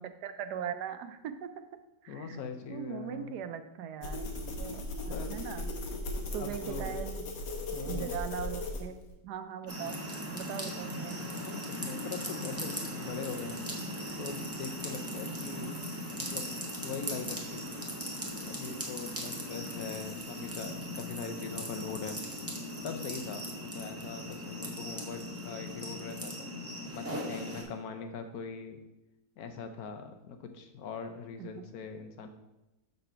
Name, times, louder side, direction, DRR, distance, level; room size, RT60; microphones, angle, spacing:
voice 1, 0.0-1.5 2.0-2.4 2.7-4.2 4.6-5.7 6.3-7.2 7.9-8.9 9.2-10.0 10.3-11.2 31.4-31.7, right 8 dB, 75° right, 9 dB, 1.1 m, -40 dB
voice 2, 2.1-3.4 5.1-5.4 6.4-7.0 7.7-8.2 11.4-13.6 14.2-15.8 16.2-16.5 16.8-17.8 18.4-22.2 22.8-23.5 23.7-26.5 26.9-28.8 29.4-32.3, left 5 dB, 70° left, 6 dB, 1.1 m, -41 dB
sound 1, 4.0-9.1, left 1 dB, 85° left, 1.7 m, -37 dB
sound 2, 9.7-27.6, equal, 10° right, 0.7 m, -39 dB
6.6 x 4.1 x 5.6 m, 0.96 s
omnidirectional pair, 1.8 m